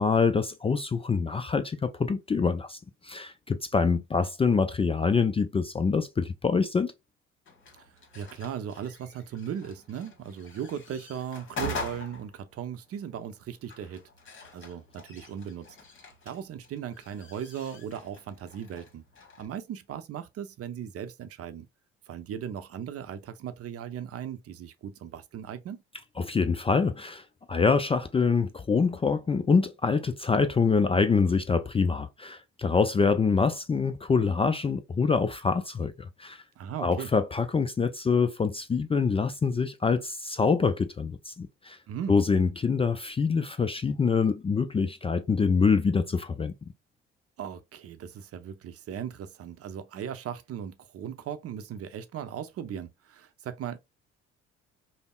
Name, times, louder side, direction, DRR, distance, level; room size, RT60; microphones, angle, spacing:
voice 1, 0.0-6.9 26.2-27.2 27.5-35.9 36.2-36.4 36.8-41.8 42.1-46.5, left 5 dB, 20° left, 0.4 m, -25 dB
sound 1, 7.4-19.5, left 2 dB, 40° left, 1.4 m, -43 dB
voice 2, 7.8-14.0 14.5-15.7 16.2-19.0 19.4-21.7 22.1-25.8 36.6-37.1 41.9-42.2 47.4-53.8, right 9 dB, 45° right, 0.7 m, -38 dB
5.2 x 2.1 x 2.3 m
hypercardioid pair, 55°, 32 cm